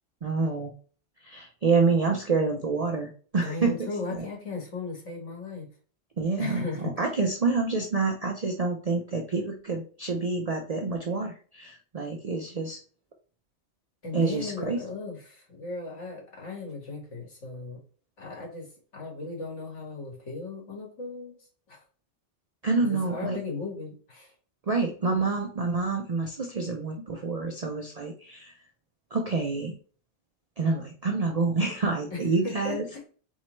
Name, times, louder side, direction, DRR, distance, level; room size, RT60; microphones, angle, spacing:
voice 1, 0.2-0.7 1.2-3.7 4.1-4.2 6.2-12.8 14.1-14.8 22.6-23.4 24.7-28.6 29.1-29.7 30.6-32.9, right 4 dB, 45° right, 2 dB, 0.6 m, -27 dB
voice 2, 3.4-5.7 6.4-6.9 14.0-17.8 18.2-18.7 18.9-21.4 21.7-21.8 22.8-24.3 32.1-33.1, left 3 dB, 85° left, -1 dB, 2.1 m, -37 dB
4.2 x 3.7 x 3.1 m, 0.40 s
omnidirectional pair, 1.2 m